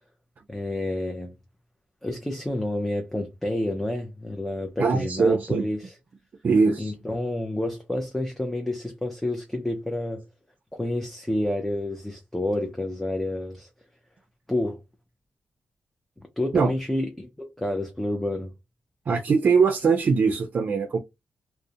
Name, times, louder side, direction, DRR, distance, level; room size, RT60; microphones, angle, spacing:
voice 1, 0.5-1.4 2.0-5.9 6.8-10.2 10.7-13.7 14.5-14.8 16.4-18.5, left 1 dB, 5° left, 0.4 m, -29 dB
voice 2, 4.8-5.6 6.4-6.9 16.5-16.7 19.1-21.0, right 5 dB, 55° right, 0.4 m, -21 dB
2.4 x 2.0 x 2.6 m
wide cardioid pair, 110°, 3 cm